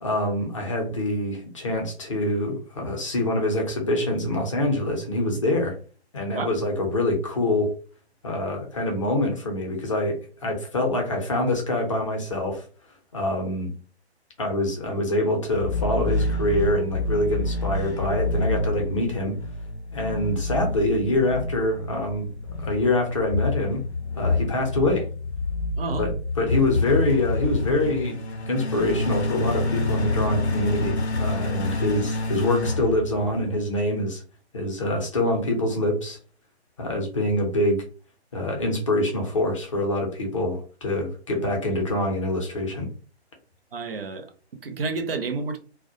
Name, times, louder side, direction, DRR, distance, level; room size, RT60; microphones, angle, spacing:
voice 1, 0.0-5.8 6.1-7.7 8.2-12.6 13.1-13.7 14.4-19.4 19.9-22.3 22.6-23.8 24.2-25.1 26.0-28.2 28.5-34.2 34.5-36.2 36.8-37.8 38.3-42.9, left 1 dB, 30° left, 0.6 m, -25 dB
sound 1, 15.5-33.7, left 2 dB, 80° left, 0.6 m, -27 dB
voice 2, 25.8-26.1 43.7-44.3 44.6-45.6, right 4 dB, 60° right, 0.5 m, -29 dB
2.2 x 2.1 x 2.6 m
figure-of-eight pair, 135°, 33 cm